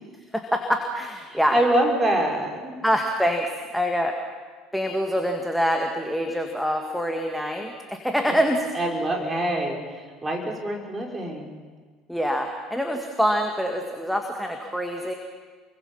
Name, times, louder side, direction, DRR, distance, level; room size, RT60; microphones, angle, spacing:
voice 1, 0.3-1.6 2.8-4.2 4.7-8.7 12.1-15.1, equal, ahead, 3 dB, 2.3 m, -25 dB
voice 2, 1.3-2.7 8.3-8.4 8.7-11.5, right 1 dB, 20° right, 0 dB, 5.7 m, -25 dB
29.5 x 23.0 x 5.7 m, 1.5 s
figure-of-eight pair, 65°, 0 cm